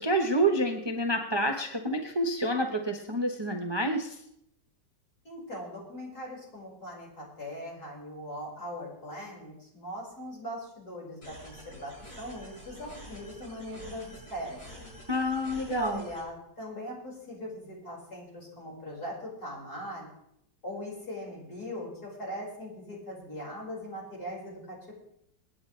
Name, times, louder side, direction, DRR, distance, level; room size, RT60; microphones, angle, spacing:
voice 1, 0.0-4.1 15.1-16.0, right 1 dB, 20° right, 2 dB, 0.9 m, -28 dB
voice 2, 5.2-14.9 15.7-20.1 20.6-24.9, equal, 60° left, -4 dB, 5.8 m, -40 dB
sound 1, 11.2-16.2, equal, 75° left, 6.7 m, -48 dB
27.0 x 9.6 x 3.3 m, 0.76 s
omnidirectional pair, 1.9 m